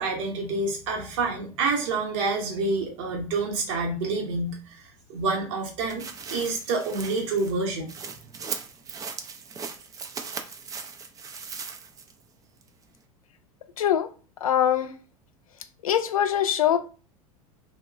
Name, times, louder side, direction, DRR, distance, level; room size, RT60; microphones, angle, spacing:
voice 1, 0.0-7.9, right 3 dB, 55° right, 0.8 m, -28 dB
sound 1, 5.9-12.2 12.6-12.7, right 5 dB, 20° right, 0.4 m, -38 dB
voice 2, 13.8-14.1 14.4-14.9 15.8-16.8, left 10 dB, 75° left, 0.4 m, -22 dB
2.9 x 2.0 x 2.3 m
figure-of-eight pair, 80°, 18 cm